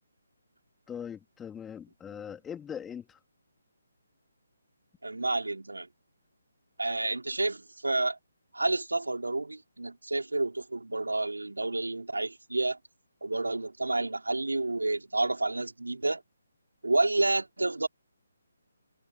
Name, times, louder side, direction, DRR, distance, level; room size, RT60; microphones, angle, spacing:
voice 1, 0.9-3.2, left 8 dB, 10° left, 3.1 m, -41 dB
voice 2, 5.0-5.9 6.8-8.2 8.5-12.8 13.2-16.2 16.8-17.9, right 2 dB, 75° right, 4.0 m, -29 dB
figure-of-eight pair, 145°, 0 cm